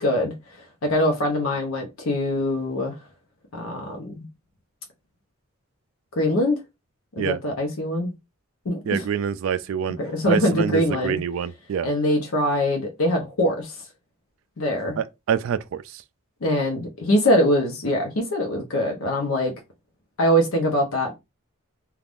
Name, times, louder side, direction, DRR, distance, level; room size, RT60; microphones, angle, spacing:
voice 1, 0.0-3.0 3.5-4.2 6.1-6.6 7.1-8.1 8.6-9.0 10.0-11.2 11.8-13.8 14.6-15.0 16.4-19.5 20.2-21.1, equal, 75° left, 0.7 m, -23 dB
voice 2, 8.9-10.0 10.2-11.9 15.0-16.0, right 7 dB, 65° right, 0.3 m, -26 dB
3.4 x 2.3 x 2.5 m
head